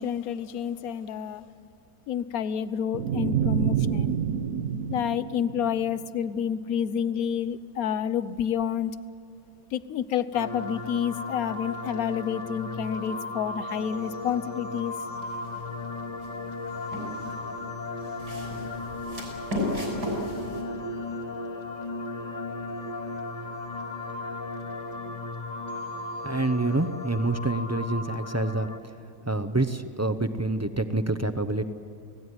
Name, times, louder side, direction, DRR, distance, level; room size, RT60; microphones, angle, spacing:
voice 1, 0.0-1.5 2.1-4.1 4.9-8.9 9.7-14.9, left 8 dB, 70° left, 15 dB, 1.2 m, -29 dB
sound 1, 2.9-6.2, right 8 dB, 65° right, 1.2 m, -28 dB
sound 2, 10.3-28.8, left 2 dB, 30° left, 1.3 m, -35 dB
sound 3, 15.2-15.6 16.2-17.4 18.0-20.6, left 1 dB, 85° right, 6.5 m, -33 dB
voice 2, 26.2-28.7 29.2-31.6, right 2 dB, 25° right, 9 dB, 0.4 m, -27 dB
29.5 x 17.5 x 9.6 m, 2.5 s
omnidirectional pair, 1.6 m